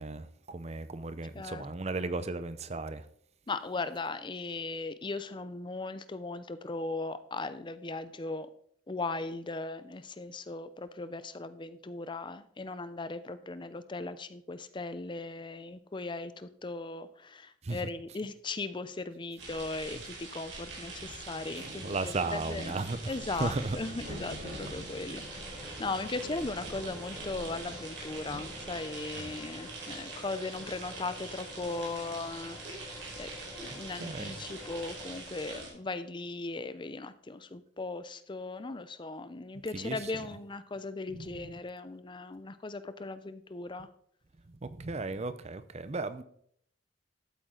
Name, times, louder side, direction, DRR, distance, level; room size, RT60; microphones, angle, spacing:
voice 1, 0.0-3.0 17.6-17.8 21.8-23.0 23.4-23.8 29.2-29.4 34.0-34.3 39.7-40.0 41.1-41.3 44.6-46.2, right 3 dB, 35° right, 0.6 m, -35 dB
voice 2, 1.3-1.7 3.5-8.5 8.9-22.8 23.1-33.3 33.6-43.9, left 3 dB, 25° left, 0.6 m, -38 dB
sound 1, 19.4-35.7, right 2 dB, 85° right, 4.8 m, -43 dB
sound 2, 25.2-35.2, left 1 dB, 5° left, 3.6 m, -49 dB
12.5 x 8.4 x 3.9 m
head